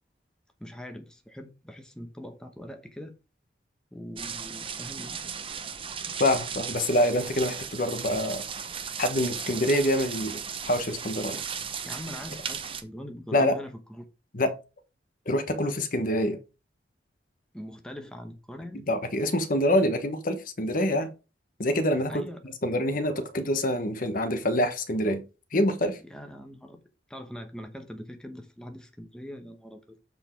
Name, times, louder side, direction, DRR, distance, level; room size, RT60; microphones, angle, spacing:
voice 1, 0.6-3.1 3.9-5.3 6.7-6.9 11.8-14.0 17.5-18.9 22.1-22.4 26.0-26.8 27.1-30.0, equal, 5° left, 0.9 m, -42 dB
sound 1, 4.2-12.8, right 7 dB, 30° right, 0.8 m, -36 dB
voice 2, 6.2-8.4 9.0-10.4 10.7-11.4 13.3-13.6 14.3-14.5 15.3-16.4 18.7-21.1 21.6-22.2 22.6-25.2 25.5-26.0, left 1 dB, 50° left, 1.1 m, -26 dB
7.7 x 4.5 x 4.5 m
head